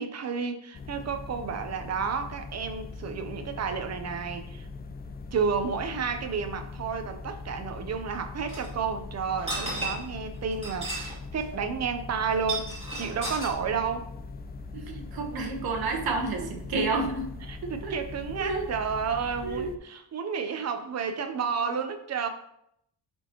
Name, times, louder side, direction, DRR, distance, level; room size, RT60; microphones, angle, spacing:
voice 1, 0.0-4.7 5.3-14.1 16.4-16.5 17.5-22.3, right 6 dB, 40° right, 7 dB, 0.8 m, -31 dB
sound 1, 0.7-19.8, left 3 dB, 25° left, 0.3 m, -41 dB
sound 2, 8.5-8.7 9.3-10.1 10.5-11.2 11.4-11.5 12.3-13.5, right 2 dB, 15° right, 3.1 m, -34 dB
voice 2, 14.7-17.3 17.6-18.0 18.4-18.7 19.4-19.7, right 3 dB, 60° right, 2 dB, 1.3 m, -30 dB
11.5 x 4.5 x 3.0 m, 0.73 s
wide cardioid pair, 175°, 42 cm